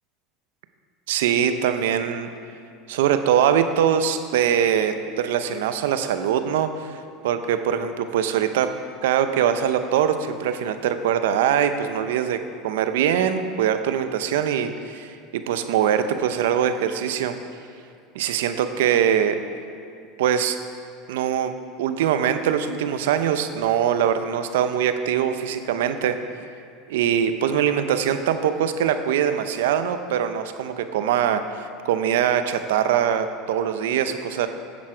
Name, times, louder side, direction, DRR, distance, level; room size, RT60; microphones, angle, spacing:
voice 1, 1.1-2.3 2.9-8.7 9.0-17.4 18.1-19.4 20.2-20.6 21.1-26.2 26.9-34.5, right 9 dB, 80° right, 9 dB, 0.6 m, -22 dB
10.5 x 7.5 x 4.9 m, 2.4 s
hypercardioid pair, 95°, 0 cm